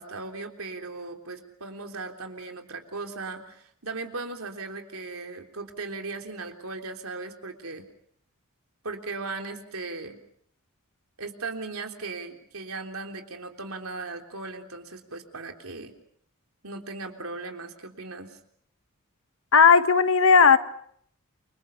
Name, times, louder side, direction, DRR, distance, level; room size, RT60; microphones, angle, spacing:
voice 1, 0.0-7.9 8.8-10.2 11.2-15.9 16.6-18.4, right 3 dB, 75° right, 4 dB, 3.6 m, -37 dB
voice 2, 19.5-20.6, left 5 dB, 65° left, 11 dB, 1.4 m, -16 dB
29.5 x 25.0 x 5.6 m, 0.66 s
head